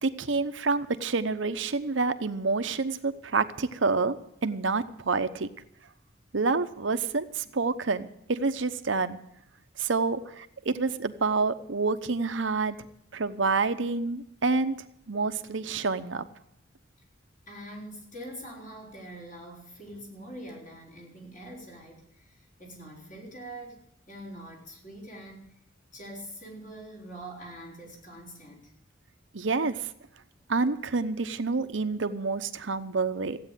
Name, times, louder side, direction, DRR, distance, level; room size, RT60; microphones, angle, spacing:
voice 1, 0.0-5.5 6.3-9.2 9.8-12.8 13.1-14.7 15.1-16.2 29.3-29.8 30.5-33.4, right 4 dB, 75° right, 11 dB, 0.9 m, -28 dB
voice 2, 17.5-25.6 25.9-28.7, right 1 dB, 40° left, -2 dB, 4.3 m, -44 dB
15.5 x 8.7 x 9.0 m, 0.76 s
head